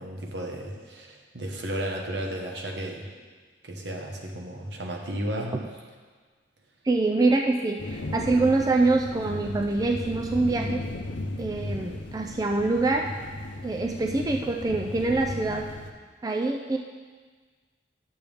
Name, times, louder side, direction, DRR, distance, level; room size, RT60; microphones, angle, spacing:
voice 1, 0.0-3.1 3.6-5.6, right 1 dB, 70° right, 0 dB, 1.2 m, -33 dB
voice 2, 6.8-10.8 11.4-13.1 13.6-15.7 16.2-16.8, right 3 dB, 20° right, 2 dB, 0.4 m, -25 dB
sound 1, 7.8-15.9, left 2 dB, 80° left, 0.7 m, -36 dB
10.5 x 6.9 x 3.5 m, 1.5 s
head